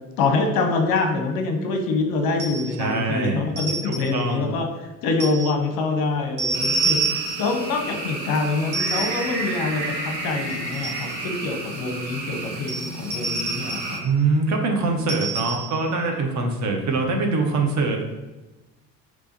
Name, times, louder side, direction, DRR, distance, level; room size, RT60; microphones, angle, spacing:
voice 1, 0.2-14.0, left 3 dB, 45° left, 3 dB, 0.8 m, -25 dB
sound 1, 2.4-2.8 3.6-4.2 5.2-5.5 6.4-7.6 8.7-9.4 10.5-11.2 12.7-14.0 15.1-15.8, right 4 dB, 55° right, 1.2 m, -27 dB
voice 2, 2.8-3.4 3.8-4.5 14.0-18.1, right 3 dB, 35° right, 2 dB, 0.7 m, -23 dB
sound 2, 6.5-14.0, right 2 dB, 90° right, 0.7 m, -32 dB
3.4 x 3.1 x 4.0 m, 1.1 s
figure-of-eight pair, 60°, 49 cm